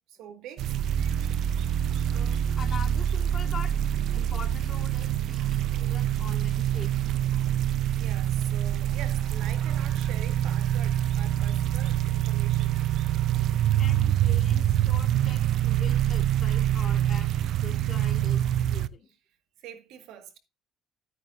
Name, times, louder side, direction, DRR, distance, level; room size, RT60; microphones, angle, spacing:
voice 1, 0.1-0.8 7.6-12.8 19.6-20.4, right 9 dB, 80° right, 2.0 m, -45 dB
sound 1, 0.6-18.9, right 11 dB, 65° right, 0.5 m, -25 dB
voice 2, 2.1-3.7 4.1-6.9 13.8-17.3 17.6-19.1, left 6 dB, 40° left, 2.1 m, -43 dB
sound 2, 9.2-14.1, left 2 dB, 5° left, 3.9 m, -55 dB
13.5 x 9.3 x 2.7 m
cardioid pair, 120°, 0 cm